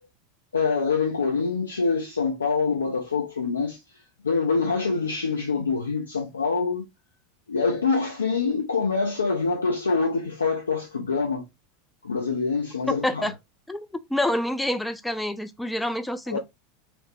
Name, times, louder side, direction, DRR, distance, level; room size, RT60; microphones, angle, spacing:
voice 1, 0.5-3.8 4.2-6.9 7.5-11.5 12.0-13.3 16.3-16.4, left 4 dB, 80° left, 0.4 m, -25 dB
voice 2, 12.9-13.3 13.7-16.4, left 1 dB, 5° left, 0.3 m, -27 dB
3.0 x 2.0 x 2.6 m
figure-of-eight pair, 85°, 0 cm